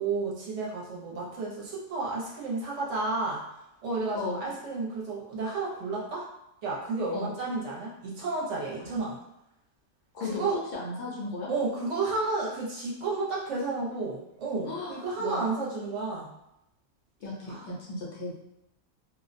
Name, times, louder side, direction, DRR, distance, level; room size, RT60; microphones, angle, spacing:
voice 1, 0.0-3.4 3.8-6.3 6.6-9.2 10.2-10.6 11.5-16.3 17.5-17.6, right 3 dB, 65° right, -5 dB, 0.9 m, -32 dB
voice 2, 4.1-4.5 7.1-7.4 8.8-9.0 10.1-10.4 10.7-11.5 14.6-15.5 17.2-18.3, left 3 dB, 65° left, -4 dB, 0.8 m, -36 dB
2.4 x 2.1 x 2.4 m, 0.84 s
omnidirectional pair, 1.4 m